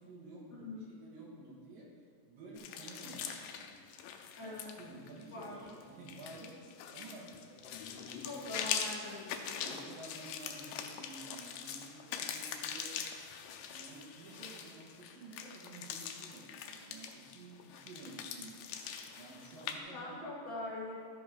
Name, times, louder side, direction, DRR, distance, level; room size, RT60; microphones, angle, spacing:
voice 1, 0.0-1.9 2.3-4.0 4.4-8.6 9.6-12.9 13.7-20.1, right 2 dB, 75° right, -5 dB, 3.1 m, -52 dB
sound 1, 2.6-19.8, left 7 dB, 80° left, 2.2 m, -43 dB
voice 2, 4.4-4.7 5.3-5.6 8.2-9.7 19.9-20.9, left 2 dB, 30° left, -6 dB, 3.3 m, -43 dB
13.5 x 5.2 x 4.9 m, 2.1 s
omnidirectional pair, 4.0 m